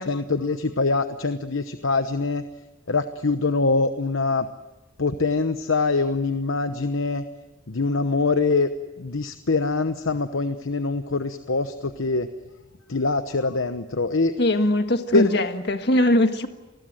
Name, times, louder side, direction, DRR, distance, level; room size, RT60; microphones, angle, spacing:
voice 1, 0.0-2.4 2.9-4.5 5.0-7.2 7.7-8.7 9.0-12.3 12.9-14.3 15.1-15.4, left 3 dB, 80° left, 9 dB, 1.0 m, -24 dB
voice 2, 14.4-16.5, left 1 dB, 55° left, 7 dB, 1.7 m, -21 dB
28.0 x 20.5 x 7.7 m, 1.0 s
head